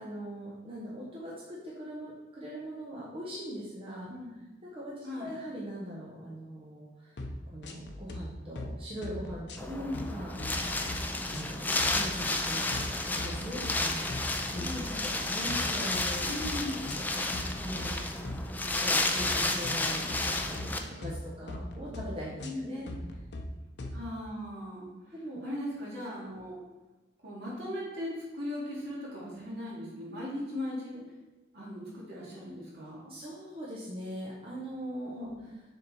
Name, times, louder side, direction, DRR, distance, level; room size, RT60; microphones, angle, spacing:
voice 1, 0.0-4.1 4.7-7.2 7.5-10.8 11.3-16.3 16.7-16.9 17.1-18.2 18.8-22.9 25.1-25.4 33.1-35.3, equal, 35° right, -6 dB, 1.1 m, -41 dB
sound 1, 7.2-7.4 7.6-8.2 8.6-8.7 9.0-10.1 10.4-11.0 11.3-11.5 11.8-12.3 12.7-12.9 13.2-13.7 14.1-14.3 14.6-15.1 15.5-15.7 15.9-16.5 16.9-17.9 18.2-18.4 18.7-19.3 19.6-19.8 20.1-20.7 21.0-21.2 21.5-22.1 22.4-22.6 22.9-23.4 23.8-24.0, left 1 dB, 75° left, 0.7 m, -40 dB
Wind, 9.6-20.8, left 2 dB, 10° left, 0.4 m, -32 dB
voice 2, 9.7-10.1 14.6-15.1 16.3-16.7 22.4-22.7 23.9-25.1 25.4-26.6 27.2-31.0 31.5-33.1 35.1-35.5, left 1 dB, 65° right, -6 dB, 2.3 m, -38 dB
6.9 x 3.7 x 4.4 m, 1.1 s
head